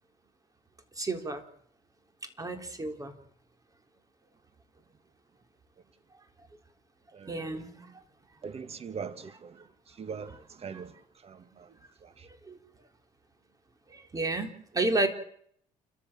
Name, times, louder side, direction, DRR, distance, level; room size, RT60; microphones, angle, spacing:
voice 1, 1.0-1.4 2.4-3.1 7.3-7.7 12.5-12.6 13.9-15.1, right 2 dB, 25° right, 3.9 m, -31 dB
voice 2, 7.1-7.9 8.4-9.6 10.0-10.9 11.2-11.7 12.0-12.3, right 6 dB, 45° right, 2.0 m, -42 dB
29.0 x 14.0 x 7.5 m
cardioid pair, 85°, 15 cm